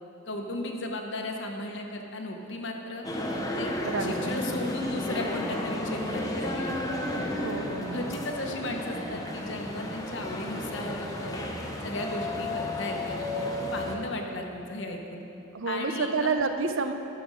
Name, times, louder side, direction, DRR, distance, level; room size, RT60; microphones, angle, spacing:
voice 1, 0.3-3.0 3.6-3.7 4.0-7.3 7.9-11.5 11.8-15.2 15.7-16.4, left 1 dB, 60° left, 2 dB, 1.1 m, -36 dB
sound 1, 3.0-14.0, left 1 dB, 15° left, 0.9 m, -33 dB
voice 2, 3.8-4.3 7.3-8.0 15.5-16.9, right 4 dB, 75° right, 7 dB, 0.7 m, -29 dB
11.5 x 6.9 x 6.4 m, 3.0 s
head